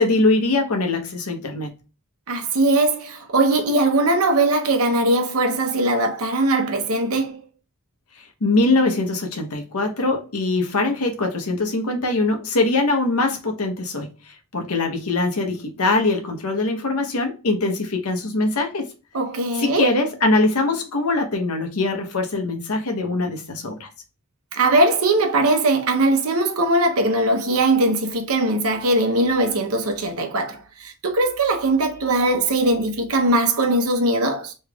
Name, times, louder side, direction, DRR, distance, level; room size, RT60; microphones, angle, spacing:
voice 1, 0.0-1.7 8.2-18.9 19.5-23.9, left 2 dB, 85° left, 0.9 m, -22 dB
voice 2, 2.3-7.4 19.1-19.9 24.5-34.5, right 2 dB, 75° right, 0.8 m, -20 dB
3.4 x 3.1 x 2.3 m
head